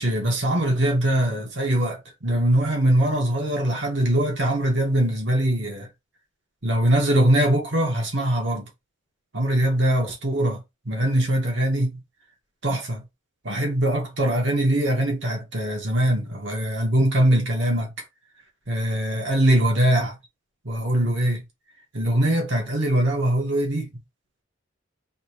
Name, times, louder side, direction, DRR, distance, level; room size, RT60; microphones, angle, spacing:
voice 1, 0.0-5.9 6.6-8.7 9.3-12.0 12.6-13.0 13.4-17.9 18.7-20.2 20.6-21.4 21.9-23.9, right 1 dB, 60° right, 1.5 m, -22 dB
5.3 x 3.3 x 2.5 m
head